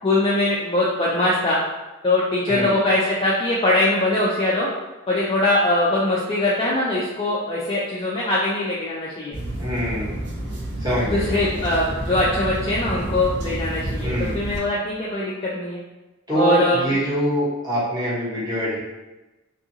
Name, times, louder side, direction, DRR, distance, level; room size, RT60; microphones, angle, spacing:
voice 1, 0.0-1.6 2.0-4.7 5.1-9.4 11.0-15.8 16.3-17.0, left 1 dB, 25° left, -6 dB, 0.3 m, -22 dB
sound 1, 9.3-14.6, right 1 dB, 55° right, 0.8 m, -29 dB
voice 2, 9.6-10.2 10.8-11.6 14.0-14.3 16.3-18.8, equal, 20° right, -10 dB, 1.1 m, -24 dB
2.6 x 2.5 x 2.7 m, 1.1 s
head